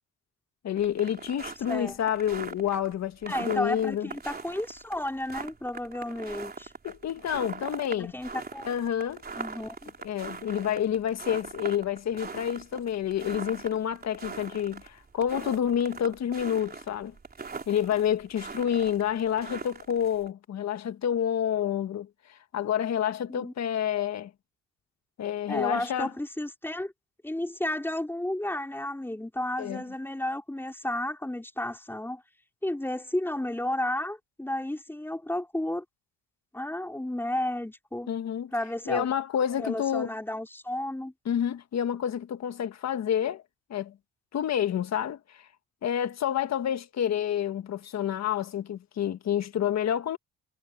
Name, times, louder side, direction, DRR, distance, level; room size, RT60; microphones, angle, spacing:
voice 1, 0.6-4.1 6.8-8.1 8.6-9.2 10.0-17.1 17.7-24.3 25.2-26.1 29.6-29.8 38.1-38.5 38.9-40.1 41.3-43.4 43.7-44.0 44.3-45.5 45.8-50.2, left 9 dB, 60° left, 1.7 m, -29 dB
sound 1, 0.8-20.3, right 4 dB, 30° right, 3.9 m, -41 dB
voice 2, 3.3-6.7 8.0-8.6 9.4-9.9 23.3-23.5 25.5-26.9 27.2-32.2 32.6-35.8 36.5-38.1 38.5-39.1 39.5-41.1, left 1 dB, 5° left, 4.8 m, -32 dB
cardioid pair, 90°, 30 cm